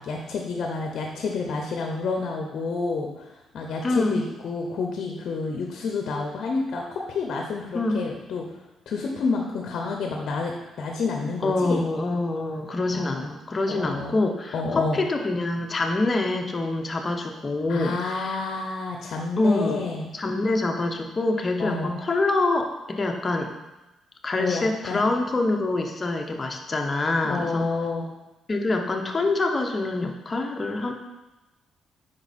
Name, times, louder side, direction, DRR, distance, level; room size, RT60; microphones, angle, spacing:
voice 1, 0.0-8.4 8.9-11.8 12.9-13.2 13.7-14.1 14.5-15.0 17.7-20.1 21.6-22.0 24.4-25.0 27.2-28.1, left 4 dB, 65° left, 2 dB, 0.8 m, -29 dB
voice 2, 3.8-4.2 7.7-8.0 11.4-18.4 19.4-19.8 20.1-23.5 24.2-27.7 28.5-30.9, left 2 dB, 30° left, 3 dB, 0.8 m, -25 dB
5.3 x 4.7 x 4.2 m, 1.0 s
cardioid pair, 90°, 0 cm